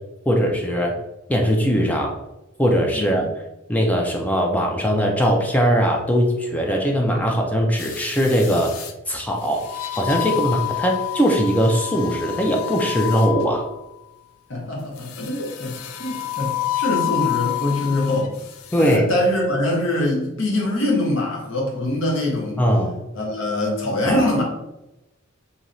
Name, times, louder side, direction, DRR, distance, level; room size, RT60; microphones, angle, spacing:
voice 1, 0.3-0.9 1.3-2.2 2.6-3.3 3.7-13.7 18.7-19.0 22.6-22.9 24.0-24.2, equal, 5° left, 1 dB, 0.3 m, -20 dB
voice 2, 2.9-3.3 14.5-18.3 18.8-22.6 23.1-24.4, left 1 dB, 65° left, -2 dB, 0.9 m, -23 dB
sound 1, 7.8-8.9 9.6-13.9 15.1-18.3 18.7-19.0, left 15 dB, 90° left, 0.3 m, -28 dB
3.1 x 2.7 x 2.6 m, 0.93 s
head